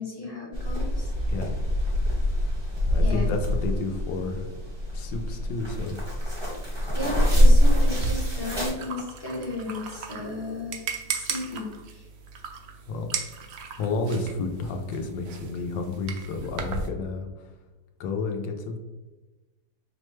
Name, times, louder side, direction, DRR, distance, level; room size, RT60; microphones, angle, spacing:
voice 1, 0.0-1.1 3.0-3.3 6.9-10.8 11.2-11.7 11.9-12.0, left 2 dB, 30° left, -5 dB, 0.4 m, -34 dB
sound 1, 0.5-8.7, equal, 25° right, 0.6 m, -23 dB
voice 2, 2.9-4.5 4.9-6.0 12.9-13.1 13.8-17.5 18.0-18.8, left 3 dB, 90° left, 4 dB, 1.3 m, -31 dB
sound 2, 7.9-16.9, right 5 dB, 75° right, 0.7 m, -36 dB
5.7 x 2.2 x 3.1 m, 1.1 s
omnidirectional pair, 1.9 m